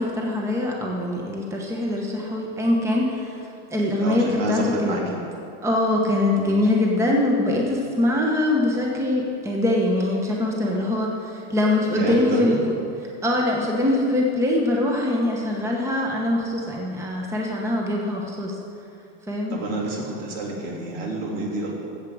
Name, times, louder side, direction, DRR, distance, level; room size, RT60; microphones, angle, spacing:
voice 1, 0.0-5.0 5.6-12.6 13.0-18.6 19.3-19.5, left 1 dB, 10° right, -1 dB, 1.1 m, -23 dB
voice 2, 4.0-5.3 11.9-12.6 19.5-21.7, right 2 dB, 65° right, -2 dB, 3.2 m, -28 dB
16.0 x 7.5 x 4.9 m, 2.6 s
supercardioid pair, 150°, 32 cm